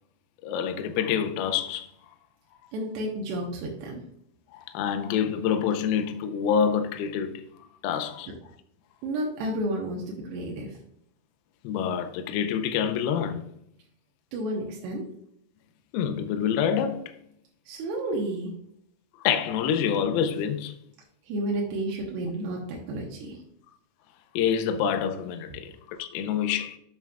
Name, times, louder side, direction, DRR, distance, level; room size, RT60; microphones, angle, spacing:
voice 1, 0.4-1.9 4.5-7.4 7.8-8.3 11.6-13.5 15.9-17.1 19.2-20.8 24.4-26.8, left 8 dB, 85° left, 2.2 m, -27 dB
voice 2, 2.7-4.0 9.0-10.8 14.3-15.1 17.7-18.5 21.3-23.4, right 1 dB, 85° right, 3.0 m, -31 dB
7.8 x 7.3 x 2.3 m
omnidirectional pair, 4.7 m